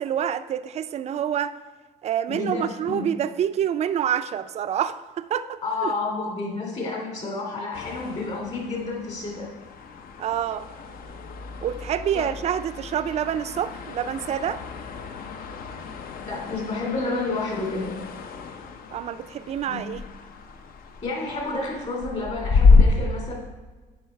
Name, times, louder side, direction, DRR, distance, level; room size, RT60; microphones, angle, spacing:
voice 1, 0.0-1.6 2.0-5.9 10.2-10.7 11.6-14.6 18.9-20.0, right 9 dB, 40° right, 12 dB, 0.4 m, -27 dB
voice 2, 2.3-3.1 5.6-9.5 12.1-12.3 16.2-17.9 19.7-19.8 21.0-23.3, left 3 dB, 40° left, -1 dB, 2.8 m, -30 dB
sound 1, 7.7-22.8, left 4 dB, 60° left, 0.7 m, -28 dB
9.2 x 4.8 x 4.5 m, 1.3 s
cardioid pair, 110°, 17 cm